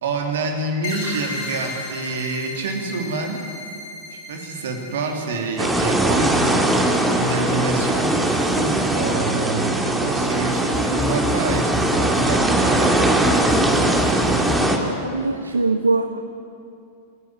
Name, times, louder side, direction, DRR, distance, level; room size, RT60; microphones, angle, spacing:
voice 1, 0.0-3.4 4.1-6.6 7.1-13.3, right 3 dB, 60° right, 4 dB, 2.8 m, -27 dB
sound 1, 0.8-8.1, left 3 dB, 55° left, 6.6 m, -36 dB
sound 2, 5.6-6.5 7.2-9.7 10.2-14.7, left 4 dB, 10° left, 2.4 m, -33 dB
sound 3, 5.6-14.8, right 1 dB, 10° right, 2.4 m, -20 dB
voice 2, 14.8-16.2, right 3 dB, 80° right, 8 dB, 0.8 m, -22 dB
28.5 x 10.0 x 9.7 m, 2.6 s
figure-of-eight pair, 90°, 0 cm